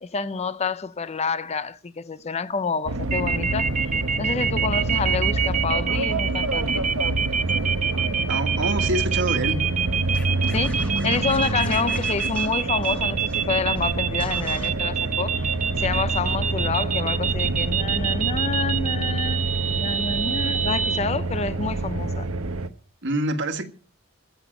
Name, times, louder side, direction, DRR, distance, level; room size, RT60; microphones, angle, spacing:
voice 1, 0.0-3.7 4.2-6.9 10.5-19.5 19.8-22.3, left 5 dB, 30° left, 0.5 m, -28 dB
sound 1, 2.9-22.7, right 2 dB, 85° right, 1.1 m, -27 dB
sound 2, 3.1-21.0, right 8 dB, 35° right, 0.8 m, -26 dB
voice 2, 8.3-9.6 23.0-23.6, right 1 dB, 55° right, 1.7 m, -26 dB
Scratching (performance technique), 10.1-13.5 13.7-13.9 14.2-14.7, left 1 dB, 5° left, 2.5 m, -42 dB
15.5 x 6.0 x 8.9 m
head